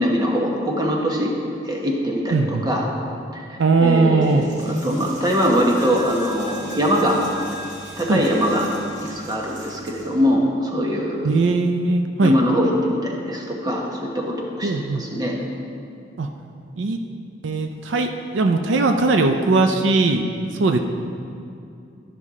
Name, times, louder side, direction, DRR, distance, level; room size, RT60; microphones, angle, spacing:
voice 1, 0.0-2.9 3.3-7.2 8.0-8.7 9.0-11.3 12.2-14.7 15.0-15.3, equal, 20° right, -1 dB, 1.0 m, -22 dB
voice 2, 2.3-2.6 3.6-4.4 8.1-8.2 11.2-12.4 14.6-15.0 16.2-16.3 16.8-17.0 17.4-20.8, right 3 dB, 75° right, 5 dB, 0.5 m, -19 dB
Coin (dropping), 4.2-10.2, right 1 dB, 40° right, 1.3 m, -39 dB
12.5 x 5.4 x 3.6 m, 2.6 s
head